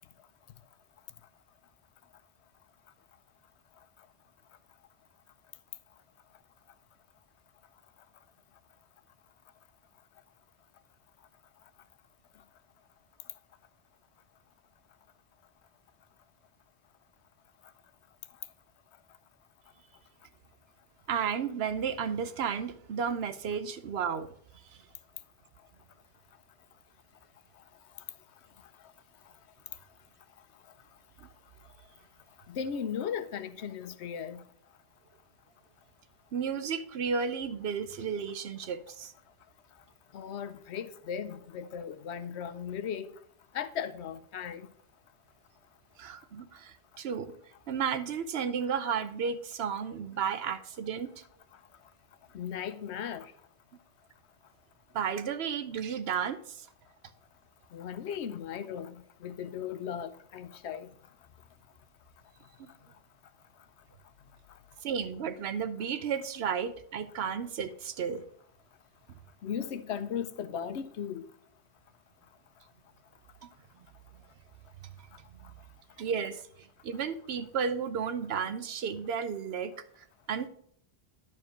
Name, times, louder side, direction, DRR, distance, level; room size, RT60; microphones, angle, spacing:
voice 1, 21.1-24.3 24.7-24.8 31.2-31.3 36.3-39.1 46.0-47.3 47.7-51.2 54.9-56.7 62.6-62.7 64.8-68.2 73.4-73.5 74.8-74.9 75.4-75.5 76.0-79.8 80.3-80.5, right 7 dB, 70° right, 0.9 m, -33 dB
voice 2, 32.5-34.4 40.1-43.1 43.5-44.7 52.3-53.3 57.7-58.9 59.2-60.9 69.4-71.2, left 8 dB, 90° left, 0.9 m, -37 dB
10.5 x 4.7 x 5.1 m
omnidirectional pair, 1.1 m